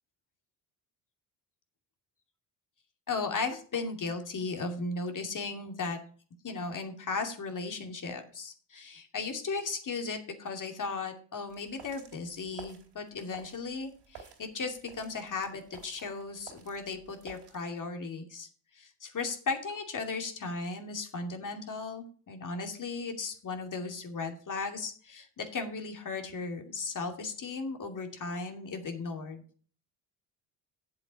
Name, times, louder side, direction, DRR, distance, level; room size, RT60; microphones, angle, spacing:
voice 1, 3.1-6.0 6.4-18.5 18.7-29.4, left 4 dB, 45° left, 5 dB, 2.6 m, -36 dB
sound 1, 11.5-17.6, right 7 dB, 65° right, 4.1 m, -52 dB
8.5 x 7.6 x 5.6 m, 0.42 s
supercardioid pair, 65°, 45 cm